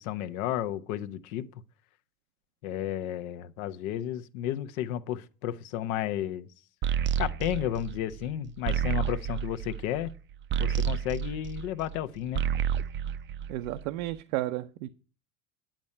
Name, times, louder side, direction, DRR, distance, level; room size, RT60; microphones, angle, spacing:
voice 1, 0.0-1.5 2.6-6.5 7.2-10.1 10.6-12.4, left 12 dB, 75° left, 1.0 m, -32 dB
sound 1, 6.8-12.0 12.3-14.0, right 9 dB, 30° right, 0.5 m, -30 dB
voice 2, 13.5-14.9, right 15 dB, 70° right, 0.7 m, -32 dB
10.5 x 7.4 x 5.5 m
hypercardioid pair, 90°, 42 cm